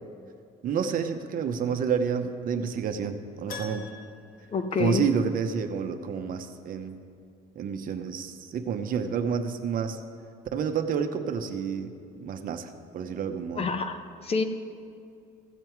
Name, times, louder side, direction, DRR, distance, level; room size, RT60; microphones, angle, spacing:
voice 1, 0.6-3.9 4.8-7.0 7.6-10.0 10.5-11.9 12.2-13.7, right 7 dB, 55° right, 7 dB, 0.8 m, -29 dB
Keyboard (musical), 3.5-5.5 5.8-5.9 8.6-8.7 8.9-9.0, left 4 dB, 60° left, 1.4 m, -45 dB
voice 2, 4.5-5.0 13.6-14.4, left 4 dB, 35° left, 8 dB, 0.8 m, -27 dB
15.5 x 7.6 x 4.6 m, 2.3 s
cardioid pair, 110°, 17 cm